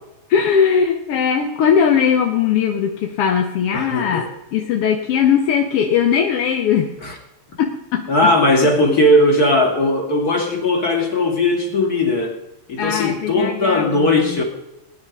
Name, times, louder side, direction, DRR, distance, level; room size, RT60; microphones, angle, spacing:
voice 1, 0.3-6.9 7.6-8.1 8.8-9.0 12.8-14.4, left 7 dB, 60° left, 3 dB, 1.8 m, -19 dB
voice 2, 3.7-4.3 7.0-7.2 8.1-12.4 12.7-14.4, left 1 dB, 30° left, 2 dB, 2.8 m, -18 dB
19.0 x 10.0 x 5.3 m, 0.92 s
omnidirectional pair, 3.5 m